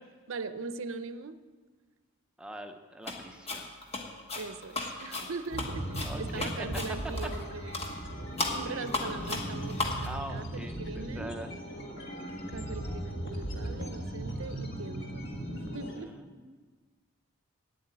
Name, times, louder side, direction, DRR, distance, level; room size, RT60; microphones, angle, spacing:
voice 1, 0.3-1.4 4.3-7.9 8.5-11.3 12.5-15.3 15.5-16.1, right 4 dB, 65° right, 12 dB, 0.6 m, -41 dB
voice 2, 2.4-3.7 6.0-6.5 8.7-8.9 10.0-11.5 16.0-16.6, right 1 dB, 5° right, 5 dB, 0.6 m, -43 dB
sound 1, 3.0-3.2 3.5-7.5 7.7-7.9 8.4-10.1, left 2 dB, 30° left, 1.3 m, -35 dB
sound 2, 5.5-16.0, right 1 dB, 50° left, 1.6 m, -38 dB
9.6 x 7.9 x 8.8 m, 1.4 s
head